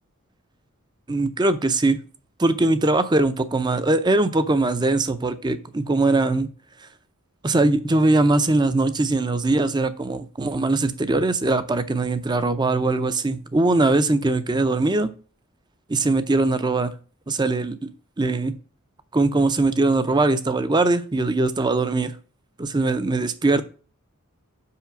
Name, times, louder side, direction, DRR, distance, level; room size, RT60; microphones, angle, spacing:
voice 1, 1.1-2.0 2.4-6.5 7.4-15.1 15.9-16.9 17.3-17.9 18.2-18.5 19.1-22.2 22.6-23.6, right 2 dB, 20° right, 12 dB, 0.5 m, -21 dB
5.8 x 4.8 x 5.9 m, 0.38 s
head